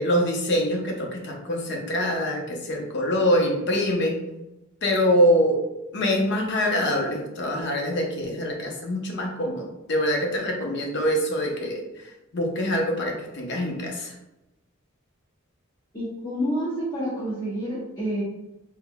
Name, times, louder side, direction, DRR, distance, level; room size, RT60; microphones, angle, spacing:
voice 1, 0.0-4.2 4.8-5.6 5.9-14.1, equal, 55° left, 0 dB, 0.7 m, -24 dB
voice 2, 15.9-18.2, equal, 20° left, -10 dB, 1.1 m, -28 dB
3.6 x 3.4 x 2.2 m, 0.94 s
head